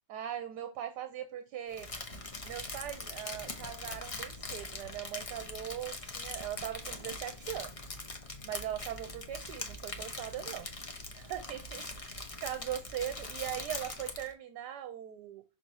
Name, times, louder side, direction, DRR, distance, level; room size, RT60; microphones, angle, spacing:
voice 1, 0.1-1.9 2.4-7.8 8.4-10.7 11.1-15.4, right 10 dB, 75° right, 1.2 m, -40 dB
Crumpling crinkling, 1.7-14.3, left 2 dB, 35° left, 0.5 m, -42 dB
6.2 x 3.9 x 4.0 m
omnidirectional pair, 1.8 m